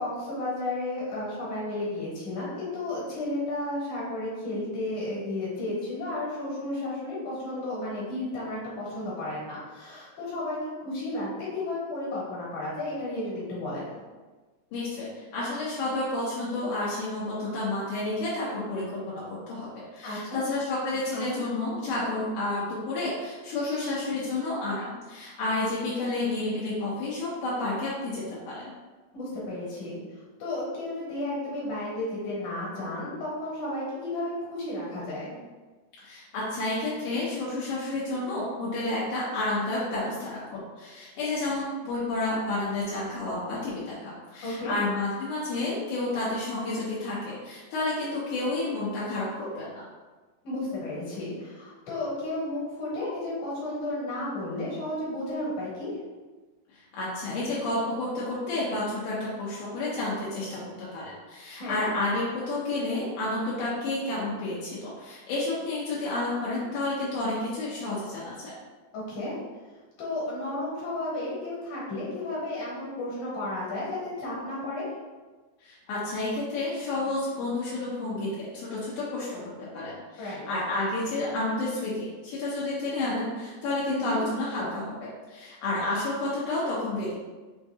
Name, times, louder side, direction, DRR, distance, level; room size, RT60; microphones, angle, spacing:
voice 1, 0.0-14.0 20.0-20.4 21.1-21.4 29.1-30.0 30.4-35.4 44.4-44.7 50.4-55.9 61.6-61.8 68.9-69.4 70.0-74.9 80.2-80.4 83.9-84.2, left 1 dB, 70° left, -7 dB, 2.7 m, -33 dB
voice 2, 14.7-28.6 36.0-49.8 56.7-68.5 75.6-87.1, left 2 dB, 85° left, -8 dB, 2.3 m, -30 dB
5.6 x 2.7 x 2.3 m, 1.3 s
omnidirectional pair, 3.6 m